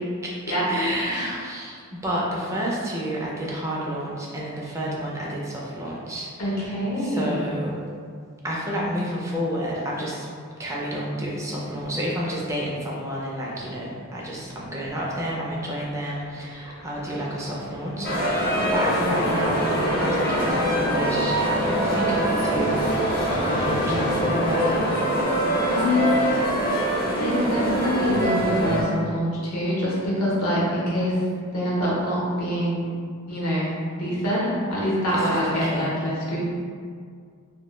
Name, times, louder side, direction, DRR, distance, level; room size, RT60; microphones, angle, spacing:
voice 1, 0.7-7.9 8.4-10.3 10.6-22.8 23.2-24.9 35.1-36.1, equal, 15° right, -5 dB, 0.4 m, -30 dB
voice 2, 6.4-7.5 25.7-26.1 27.2-31.2 31.5-32.9 33.3-33.7 34.0-36.4, equal, 85° left, -6 dB, 0.8 m, -25 dB
sound 1, 13.8-24.2, equal, 75° right, 0.6 m, -37 dB
sound 2, 18.0-28.8, right 1 dB, 45° left, 0.6 m, -23 dB
2.2 x 2.1 x 3.0 m, 2.1 s
head